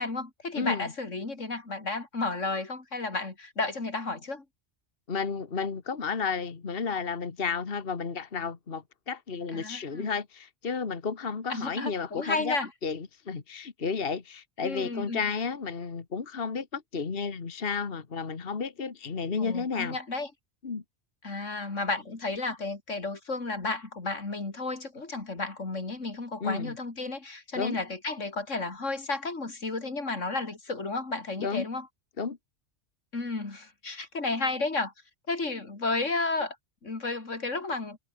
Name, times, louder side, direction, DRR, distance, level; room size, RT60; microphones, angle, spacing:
voice 1, 0.0-4.4 9.5-10.1 11.5-12.7 14.6-15.2 19.4-20.3 21.2-31.9 33.1-34.9 35.3-36.6 36.8-38.0, left 3 dB, 85° left, 3.8 m, -32 dB
voice 2, 0.5-0.9 5.1-12.6 12.8-19.9 20.6-20.8 26.4-26.7 27.5-27.8 31.4-31.7 32.2-32.4, left 5 dB, 50° left, 1.8 m, -32 dB
omnidirectional pair, 1.2 m